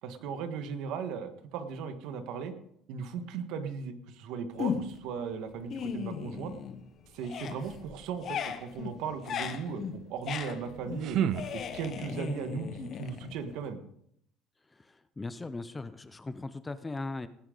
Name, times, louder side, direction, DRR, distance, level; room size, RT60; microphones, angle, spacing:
voice 1, 0.0-2.5 2.9-6.5 7.1-11.2 11.5-13.8, right 6 dB, 70° right, 8 dB, 1.5 m, -37 dB
sound 1, 4.6-5.1 5.5-6.9 7.2-13.7, left 7 dB, 40° left, 1.0 m, -37 dB
sound 2, 10.5-12.2, right 9 dB, 50° right, 0.5 m, -33 dB
voice 2, 14.7-17.3, left 3 dB, 10° left, 13 dB, 0.5 m, -39 dB
18.5 x 10.0 x 3.9 m, 0.72 s
cardioid pair, 160°, 0 cm